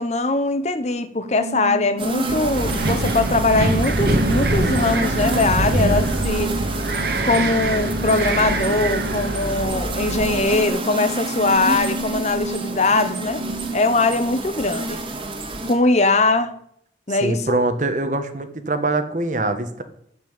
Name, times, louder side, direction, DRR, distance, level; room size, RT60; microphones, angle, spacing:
voice 1, 0.0-6.5 7.2-13.5 13.7-15.0 15.7-16.5 17.1-17.6, left 3 dB, 40° left, 10 dB, 1.0 m, -21 dB
sound 1, 1.2-13.8, right 3 dB, 85° right, 2.5 m, -32 dB
sound 2, 2.0-15.7, right 2 dB, 30° right, 2.0 m, -30 dB
Wind, 2.3-10.4, right 2 dB, 60° right, 1.7 m, -24 dB
voice 2, 17.2-19.8, right 2 dB, 45° right, 9 dB, 1.4 m, -23 dB
14.0 x 5.9 x 9.1 m, 0.70 s
head